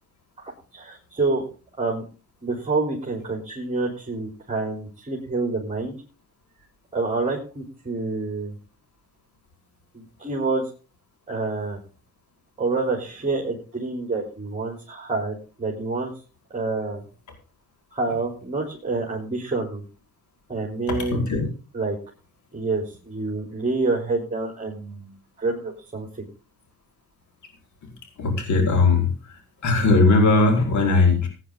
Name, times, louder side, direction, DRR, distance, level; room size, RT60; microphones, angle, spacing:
voice 1, 0.4-1.4 1.8-2.0 2.4-6.0 6.9-8.5 9.9-10.7 11.3-11.8 12.6-16.1 16.5-17.0 17.9-19.8 20.5-21.3 21.7-22.0 22.5-26.3, right 3 dB, 25° right, -1 dB, 3.9 m, -27 dB
voice 2, 20.9-21.4 28.2-29.1 29.6-31.3, left 3 dB, 70° left, 3 dB, 4.9 m, -19 dB
17.0 x 9.9 x 3.9 m, 0.36 s
cardioid pair, 90°, 30 cm